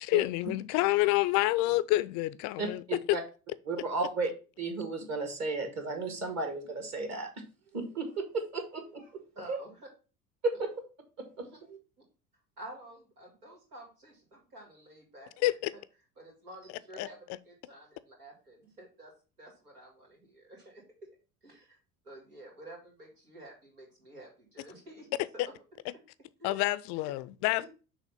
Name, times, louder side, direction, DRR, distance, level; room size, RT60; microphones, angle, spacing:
voice 1, 0.0-2.8 3.1-3.2 15.4-15.7 17.0-17.1 26.4-27.6, left 18 dB, 40° left, 0.4 m, -28 dB
voice 2, 2.6-3.2 3.7-4.3 4.6-7.3 7.7-9.1 9.5-9.6 10.4-10.7 11.2-11.8, right 3 dB, 35° right, 1.9 m, -34 dB
voice 3, 9.4-9.9 11.4-11.6 12.6-15.8 16.2-19.1 19.4-20.8 21.4-21.8 22.1-25.1 25.4-25.5 26.5-26.6 27.6-27.7, right 1 dB, 80° right, 2.6 m, -50 dB
6.5 x 3.0 x 5.6 m
figure-of-eight pair, 65°, 45 cm